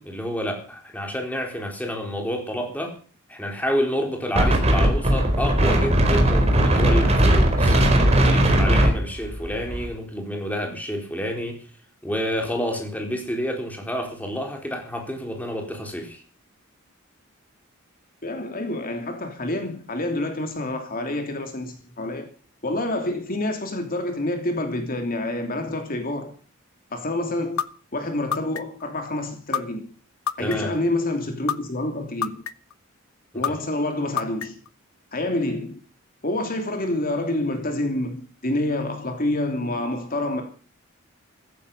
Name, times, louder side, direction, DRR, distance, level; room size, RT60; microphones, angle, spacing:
voice 1, 0.0-3.0 3.3-7.8 8.3-11.7 12.0-16.2 30.4-30.7 33.3-33.4, equal, 10° left, 4.1 m, -29 dB
Wind, 4.4-9.9, right 1 dB, 30° right, 4.4 m, -18 dB
voice 2, 18.2-22.3 22.6-26.3 26.9-27.6 27.9-29.9 30.4-32.3 33.3-34.6 35.1-35.8 36.2-40.4, left 1 dB, 45° left, 3.0 m, -27 dB
sound 1, 27.6-27.7 28.3-28.8 29.5-29.6 30.3-30.8 31.5-31.6 32.2-32.7 33.4-33.5 34.2-34.7, left 8 dB, 80° left, 1.0 m, -25 dB
16.0 x 15.0 x 5.6 m
head